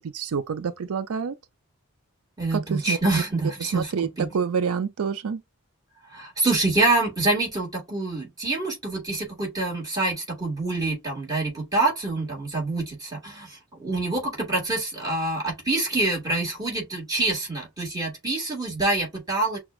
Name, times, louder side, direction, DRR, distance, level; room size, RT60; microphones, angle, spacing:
voice 1, 0.1-1.3 2.5-3.0 3.6-5.4, right 6 dB, 85° right, 0.5 m, -27 dB
voice 2, 2.4-4.3 6.1-19.6, right 2 dB, 15° right, 1.9 m, -26 dB
5.9 x 2.3 x 2.4 m
head